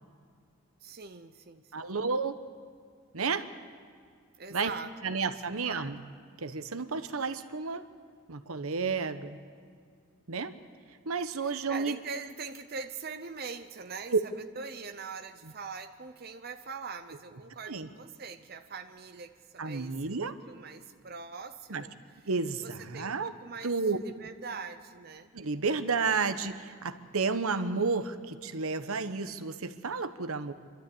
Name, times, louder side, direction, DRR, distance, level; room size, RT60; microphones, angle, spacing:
voice 1, 0.8-1.9 4.4-5.2 5.5-5.9 11.4-22.2 22.6-25.3, right 5 dB, 45° right, 7 dB, 0.7 m, -43 dB
voice 2, 1.7-2.4 3.1-3.5 4.5-4.7 5.0-6.0 6.4-7.8 8.3-9.4 10.3-10.5 11.1-12.0 17.7-17.9 19.6-20.4 21.7-21.8 22.3-23.3 23.6-24.0 25.3-30.5, right 4 dB, 80° right, 10 dB, 1.0 m, -31 dB
27.5 x 12.5 x 8.6 m, 2.1 s
head